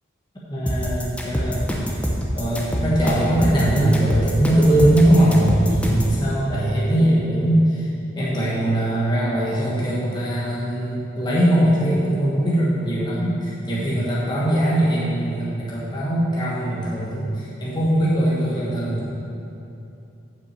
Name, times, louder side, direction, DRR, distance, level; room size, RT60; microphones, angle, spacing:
voice 1, 0.5-1.7 2.3-7.9 8.1-19.1, right 1 dB, 25° left, -7 dB, 1.3 m, -20 dB
sound 1, 0.7-6.2, equal, 5° left, 0.8 m, -25 dB
8.0 x 5.9 x 6.7 m, 2.8 s
head